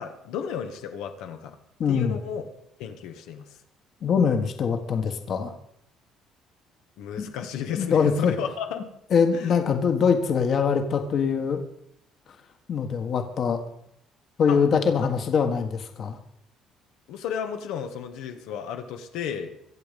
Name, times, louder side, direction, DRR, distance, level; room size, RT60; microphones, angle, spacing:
voice 1, 0.0-1.6 1.9-2.4 2.8-3.4 7.0-8.8 9.3-9.5 14.5-14.6 17.1-19.5, left 8 dB, 90° left, 5 dB, 1.8 m, -33 dB
voice 2, 1.8-2.2 4.0-5.5 7.8-8.3 9.1-11.6 12.7-13.6 14.4-16.2, left 6 dB, 45° left, 6 dB, 1.6 m, -23 dB
23.5 x 8.0 x 5.4 m, 0.76 s
cardioid pair, 135°, 0 cm